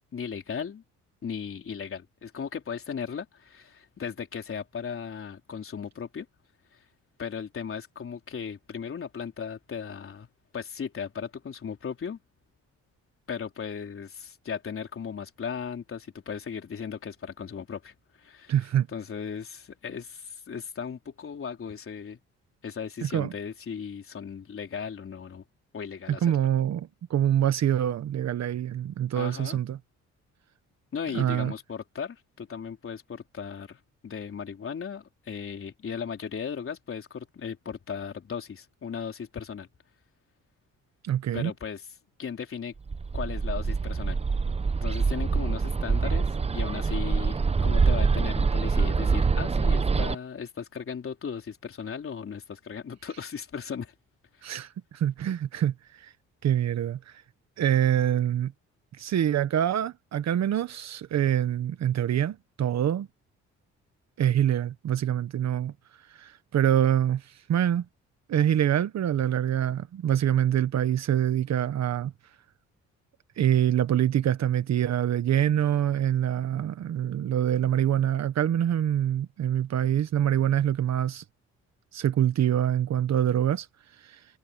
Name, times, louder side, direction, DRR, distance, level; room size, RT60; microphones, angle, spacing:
voice 1, 0.1-0.8 1.2-6.3 6.7-6.8 7.2-10.3 10.5-12.2 13.3-18.5 18.9-22.2 22.6-25.4 25.7-26.3 29.2-29.6 30.9-39.7 41.3-41.9 42.2-42.7 43.1-44.2 44.8-53.9, left 6 dB, 45° left, 3.8 m, -36 dB
voice 2, 18.5-18.9 23.0-23.3 26.1-29.8 31.1-31.5 41.0-41.5 54.4-56.1 56.4-57.1 57.6-58.5 59.0-63.1 64.2-65.7 66.1-67.8 68.3-72.1 73.4-81.2 81.9-83.7 84.0-84.2, right 10 dB, 60° right, 1.2 m, -25 dB
Bird, 42.9-50.1, right 4 dB, 20° right, 0.7 m, -25 dB
cardioid pair, 90°, 30 cm